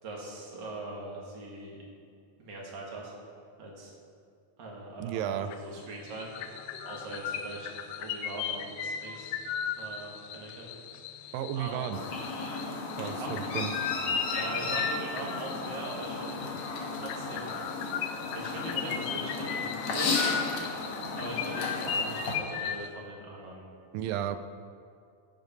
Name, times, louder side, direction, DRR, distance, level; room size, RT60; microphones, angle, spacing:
voice 1, 0.0-1.8 2.4-3.1 3.6-3.9 4.6-6.3 6.8-7.7 8.0-9.4 9.8-10.7 11.5-11.9 13.0-13.3 14.2-16.5 16.9-17.6 18.3-20.1 21.1-23.6, right 2 dB, 40° right, -3 dB, 1.6 m, -41 dB
voice 2, 5.0-5.5 11.3-12.0 13.0-13.9 23.9-24.4, right 10 dB, 85° right, 9 dB, 2.0 m, -33 dB
sound 1, 5.5-5.8 6.1-22.9, left 7 dB, 80° left, 2.4 m, -37 dB
Chirp tweet, 11.9-22.3, left 3 dB, 60° left, 2.0 m, -34 dB
15.5 x 5.5 x 5.3 m, 2.3 s
omnidirectional pair, 4.5 m